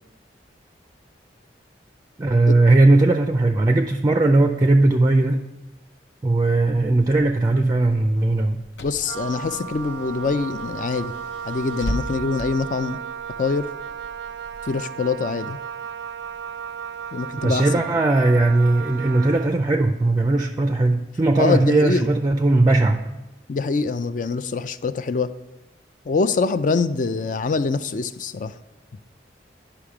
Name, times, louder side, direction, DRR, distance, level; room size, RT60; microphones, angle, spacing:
voice 1, 2.2-5.5 6.2-8.6 17.4-23.1, right 2 dB, 20° right, 6 dB, 0.4 m, -18 dB
Car / Engine, 6.4-14.7, equal, 80° left, 0.7 m, -38 dB
voice 2, 8.8-11.1 11.5-13.0 13.4-13.7 14.7-15.6 17.1-18.0 21.4-22.1 23.5-25.3 26.1-28.5, left 4 dB, 45° left, 13 dB, 0.4 m, -24 dB
Wind instrument woodwind instrument, 9.0-19.6, right 7 dB, 85° right, 0.4 m, -34 dB
10.0 x 5.8 x 4.8 m, 1.1 s
head